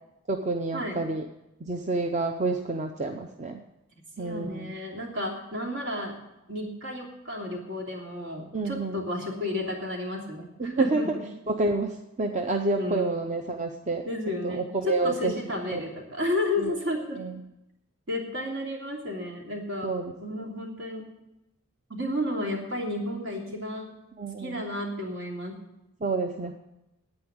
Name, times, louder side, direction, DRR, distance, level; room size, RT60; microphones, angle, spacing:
voice 1, 0.3-1.3 1.6-3.6 4.2-4.7 8.5-9.0 10.6-11.0 11.5-15.3 15.7-15.8 16.6-16.7 17.2-17.4 19.8-20.5 24.2-24.6 26.0-26.6, right 3 dB, 35° right, 4 dB, 0.6 m, -29 dB
voice 2, 4.2-6.1 6.5-11.2 12.8-13.2 14.1-17.2 18.1-19.9 20.2-21.0 21.9-23.9 24.4-25.6, left 1 dB, 70° right, 0 dB, 3.0 m, -32 dB
9.7 x 8.9 x 8.7 m, 0.91 s
head